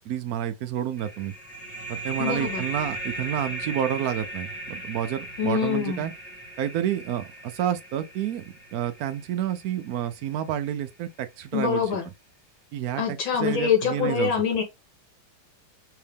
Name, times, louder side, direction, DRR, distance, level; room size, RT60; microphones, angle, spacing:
voice 1, 0.0-1.3 1.9-6.1 6.6-8.4 8.7-11.8 12.7-14.3, right 10 dB, 85° right, 0.8 m, -29 dB
sound 1, 1.0-10.3, right 2 dB, 5° left, 0.9 m, -37 dB
voice 2, 2.2-2.6 5.4-6.1 11.5-12.0 13.0-14.6, left 7 dB, 80° left, 2.3 m, -25 dB
4.6 x 2.8 x 3.4 m
omnidirectional pair, 2.1 m